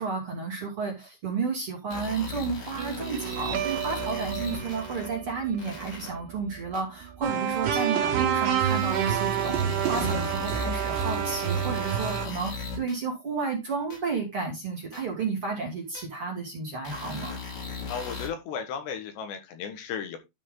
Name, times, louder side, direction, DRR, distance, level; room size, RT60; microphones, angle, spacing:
voice 1, 0.0-17.3, right 5 dB, 40° right, 1 dB, 2.6 m, -32 dB
sound 1, 1.9-5.1 5.6-6.1 6.7-6.8 7.8-7.9 8.7-13.0 13.9-14.0 14.9-15.0 16.0-16.1 16.8-18.3, left 4 dB, 60° left, 5.6 m, -38 dB
Guitar, 2.8-9.8, right 11 dB, 75° right, 2.8 m, -38 dB
sound 2, 7.2-12.3, right 8 dB, 60° right, 3.1 m, -27 dB
voice 2, 17.9-20.2, left 7 dB, 75° left, 6 dB, 3.6 m, -35 dB
12.0 x 5.0 x 3.8 m, 0.22 s
omnidirectional pair, 5.0 m